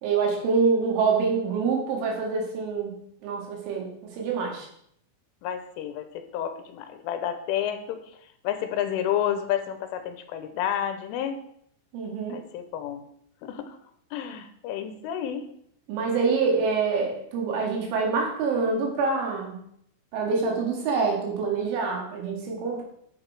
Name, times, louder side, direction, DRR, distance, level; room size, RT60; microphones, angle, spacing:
voice 1, 0.0-3.0 3.2-4.7 11.9-12.4 15.9-19.6 20.1-22.8, right 4 dB, 70° right, 0 dB, 4.2 m, -26 dB
voice 2, 5.4-8.0 8.4-11.4 12.3-13.1 13.4-13.8 14.1-15.5, left 10 dB, 85° left, 9 dB, 3.2 m, -30 dB
11.0 x 6.5 x 4.7 m, 0.70 s
omnidirectional pair, 5.8 m